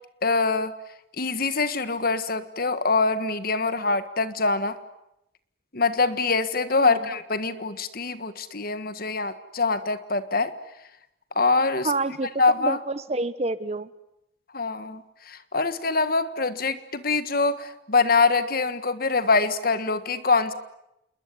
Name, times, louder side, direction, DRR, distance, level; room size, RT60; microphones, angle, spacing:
voice 1, 0.2-0.7 1.2-4.8 5.7-10.5 11.4-11.9 12.4-12.8 14.5-20.5, left 3 dB, 50° left, 12 dB, 1.6 m, -24 dB
voice 2, 6.8-7.1 11.8-13.9, right 2 dB, 35° right, 15 dB, 1.1 m, -28 dB
28.5 x 21.5 x 9.8 m, 0.86 s
head